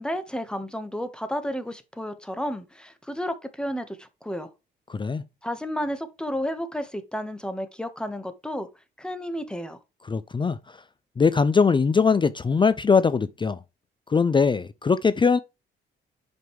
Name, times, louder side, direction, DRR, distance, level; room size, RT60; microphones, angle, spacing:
voice 1, 0.0-4.5 5.4-8.7 9.0-9.8, equal, 5° left, 1.5 m, -32 dB
voice 2, 4.9-5.2 10.1-10.6 11.2-13.6 14.1-15.4, left 5 dB, 25° left, 0.5 m, -21 dB
7.6 x 5.3 x 3.3 m
cardioid pair, 90°, 20 cm